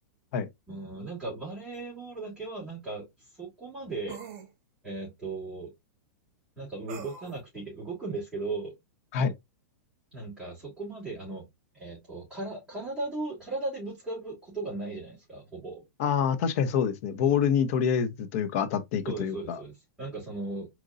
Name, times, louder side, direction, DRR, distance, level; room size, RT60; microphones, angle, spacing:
voice 1, 0.7-4.2 4.8-5.7 6.6-8.7 10.1-11.4 11.7-15.8 19.0-20.7, right 3 dB, ahead, 2.7 m, -37 dB
sound 1, 1.7-1.8 4.1-4.5 6.9-7.4, right 7 dB, 50° right, 1.4 m, -43 dB
voice 2, 16.0-19.6, left 7 dB, 50° left, 0.9 m, -26 dB
4.4 x 4.0 x 2.5 m
supercardioid pair, 150°, 9 cm